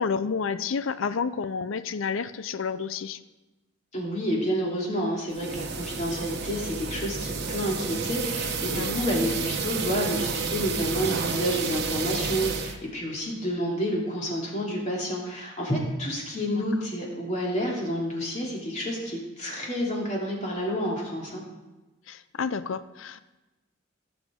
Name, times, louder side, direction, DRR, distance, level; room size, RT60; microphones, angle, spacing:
voice 1, 0.0-3.2 8.7-9.0 16.6-16.7 22.1-23.2, left 5 dB, 90° left, 14 dB, 0.5 m, -30 dB
voice 2, 3.9-21.4, equal, 40° left, -3 dB, 2.8 m, -29 dB
sound 1, 5.3-12.8, right 4 dB, 55° right, 1.1 m, -30 dB
17.0 x 7.2 x 3.6 m, 1.1 s
head